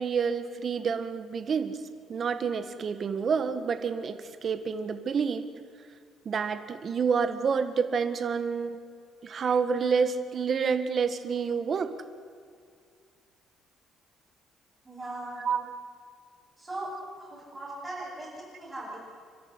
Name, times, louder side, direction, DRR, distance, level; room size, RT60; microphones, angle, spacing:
voice 1, 0.0-1.8 2.1-5.5 6.3-8.8 9.2-11.9 15.4-15.7, right 6 dB, 40° right, 10 dB, 1.8 m, -28 dB
voice 2, 14.8-15.4 16.6-16.9 17.2-19.1, right 2 dB, 15° right, -8 dB, 7.3 m, -39 dB
29.5 x 12.0 x 9.9 m, 2.2 s
cardioid pair, 135°, 0 cm